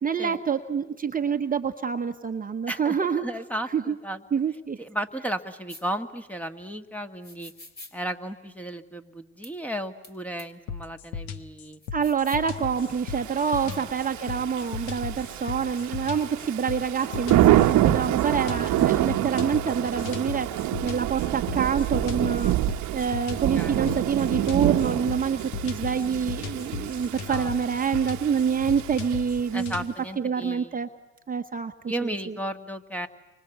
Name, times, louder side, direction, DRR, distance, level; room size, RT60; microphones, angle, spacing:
voice 1, 0.0-3.3 3.7-3.9 4.3-4.8 11.9-22.5 22.9-29.7 30.2-30.9 31.3-31.7 32.0-32.1, right 6 dB, 25° right, 6 dB, 1.2 m, -27 dB
voice 2, 2.7-4.2 4.8-7.5 7.9-11.8 13.6-13.9 23.5-23.9 27.2-27.5 29.5-30.8 31.9-33.1, right 1 dB, 5° left, 8 dB, 1.6 m, -34 dB
sound 1, 5.7-5.8 7.2-7.9 9.4-9.5 10.0-10.1 10.4-10.5 11.8-12.5, left 2 dB, 30° left, 3.4 m, -45 dB
sound 2, 10.7-29.9, left 7 dB, 80° left, 1.4 m, -37 dB
Thunder / Rain, 13.0-29.6, right 14 dB, 50° right, 1.1 m, -27 dB
29.5 x 24.5 x 8.2 m, 1.1 s
hypercardioid pair, 80°, 36 cm